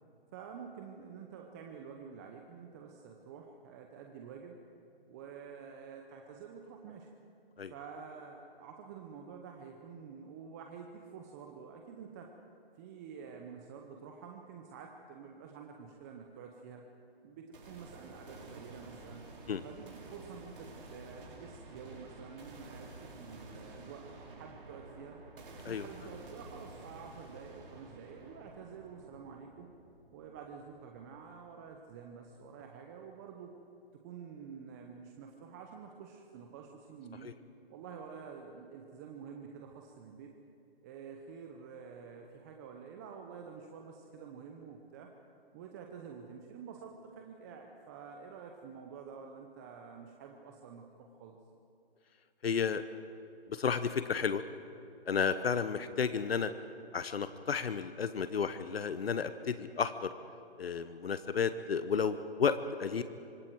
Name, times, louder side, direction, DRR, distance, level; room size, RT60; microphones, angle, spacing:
voice 1, 0.3-4.6 5.1-7.1 7.7-12.3 12.8-16.8 17.2-19.3 19.6-25.2 25.6-29.7 30.1-33.5 33.9-37.3 37.7-40.4 40.8-45.1 45.5-51.4, right 6 dB, 15° right, 2 dB, 0.8 m, -49 dB
sound 1, 17.5-31.5, right 2 dB, 55° right, 5.7 m, -51 dB
voice 2, 52.4-52.8 53.5-54.4 55.1-56.5 56.9-60.1 60.6-63.0, left 6 dB, 70° left, 11 dB, 1.1 m, -32 dB
26.0 x 25.0 x 4.7 m, 2.7 s
hypercardioid pair, 155°, 31 cm